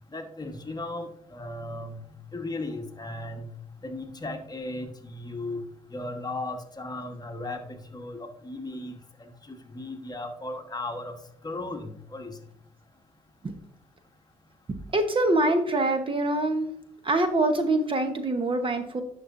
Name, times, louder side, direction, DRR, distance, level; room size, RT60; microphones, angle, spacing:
voice 1, 0.1-2.1 2.3-3.4 3.8-5.6 5.9-11.1 11.4-12.4, left 2 dB, 25° left, 5 dB, 1.2 m, -36 dB
voice 2, 14.9-16.7 17.0-19.0, right 2 dB, 35° right, 7 dB, 1.0 m, -24 dB
10.5 x 5.6 x 2.6 m, 0.67 s
supercardioid pair, 70°, 16 cm